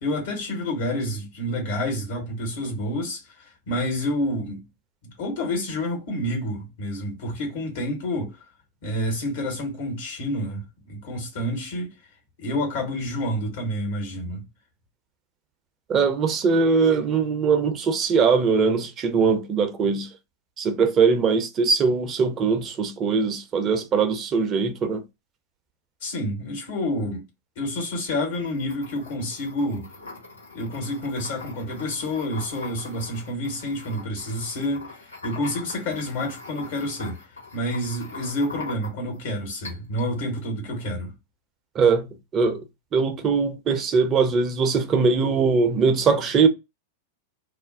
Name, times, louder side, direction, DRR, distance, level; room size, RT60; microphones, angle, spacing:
voice 1, 0.0-4.7 5.0-8.4 8.8-11.9 12.4-14.4 26.0-27.2 27.6-29.9 30.5-35.0 35.2-37.2 37.5-41.1, left 1 dB, 55° left, 1.2 m, -29 dB
voice 2, 15.9-20.1 20.6-25.0 41.8-42.1 42.3-42.6 42.9-46.5, right 5 dB, 30° right, 0.5 m, -21 dB
sound 1, 28.2-39.2 39.6-40.1, left 3 dB, 80° left, 1.3 m, -42 dB
2.4 x 2.0 x 2.5 m
figure-of-eight pair, 90°, 0 cm